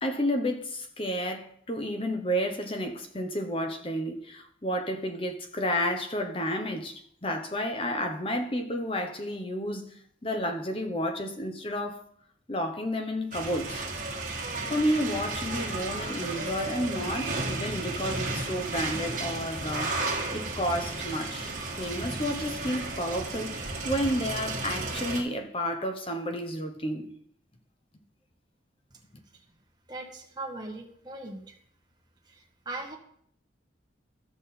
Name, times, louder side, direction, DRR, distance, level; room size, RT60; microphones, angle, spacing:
voice 1, 0.0-9.9 10.2-12.0 12.5-13.8 14.7-20.0 20.3-27.1, equal, 30° left, 1.0 m, -31 dB
sound 1, 13.3-25.2, right 2 dB, 40° right, 1.6 m, -33 dB
voice 2, 29.9-31.6 32.2-33.0, right 2 dB, 20° right, 1.5 m, -39 dB
14.0 x 6.1 x 4.2 m
head